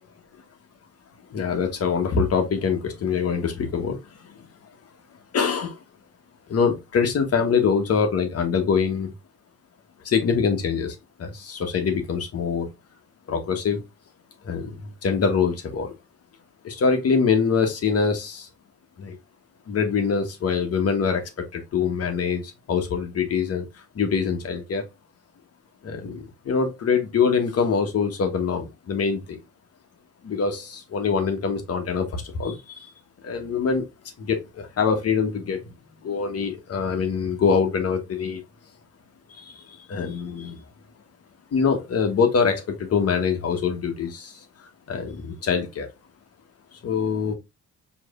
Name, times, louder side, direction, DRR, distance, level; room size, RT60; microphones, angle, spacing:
voice 1, 1.3-4.0 4.3-4.5 5.3-5.7 6.5-9.1 10.0-12.7 13.3-13.8 14.4-15.9 16.6-18.5 19.0-19.2 19.7-23.7 23.9-24.8 25.8-29.4 30.2-32.9 33.2-33.8 34.2-35.7 36.0-38.4 39.3-40.6 41.5-44.4 44.9-45.9 46.8-47.3, left 6 dB, 55° left, 1.2 m, -24 dB
4.7 x 3.2 x 2.5 m
cardioid pair, 90°, 30 cm